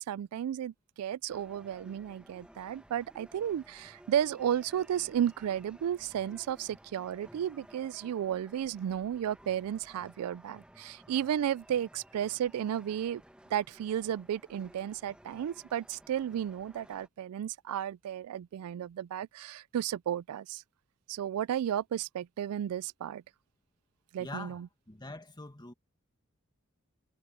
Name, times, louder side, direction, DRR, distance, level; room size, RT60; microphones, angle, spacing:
voice 1, 0.0-13.2 13.5-20.6 21.1-23.2 24.1-24.7, right 10 dB, 80° right, 0.3 m, -33 dB
sound 1, 1.3-17.1, right 1 dB, 5° right, 1.4 m, -56 dB
voice 2, 24.2-25.7, left 2 dB, 20° left, 1.8 m, -44 dB
head